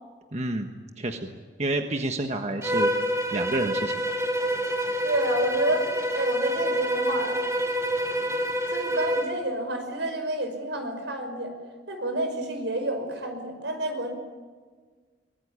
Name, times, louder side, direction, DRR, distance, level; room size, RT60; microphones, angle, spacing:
voice 1, 0.3-0.7 1.0-1.3 1.6-2.9 3.3-3.9, right 1 dB, 40° right, 5 dB, 1.3 m, -29 dB
Bowed string instrument, 2.6-9.4, equal, 15° right, 3.1 m, -27 dB
voice 2, 5.0-7.4 8.7-11.5 11.9-14.1, right 1 dB, 80° right, 6 dB, 5.5 m, -29 dB
23.5 x 20.5 x 9.7 m, 1.5 s
head